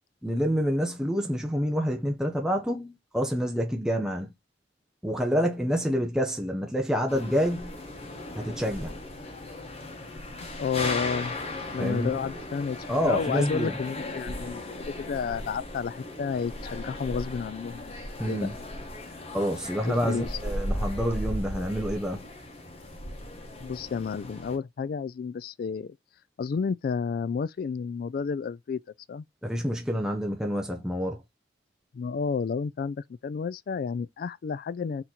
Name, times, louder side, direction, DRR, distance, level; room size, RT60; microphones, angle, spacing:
voice 1, 0.2-4.3 5.0-7.7 8.3-9.0 11.8-12.1 12.9-13.8 18.2-18.5 19.3-22.2 29.4-31.2, equal, 5° right, 0.6 m, -27 dB
sound 1, 7.1-24.6, left 1 dB, 35° left, 1.1 m, -36 dB
voice 2, 10.4-11.3 11.7-18.0 18.3-18.5 19.8-20.3 23.6-26.0 26.4-28.8 29.1-29.2 31.9-35.0, left 5 dB, 50° left, 0.3 m, -31 dB
4.2 x 3.0 x 3.7 m
head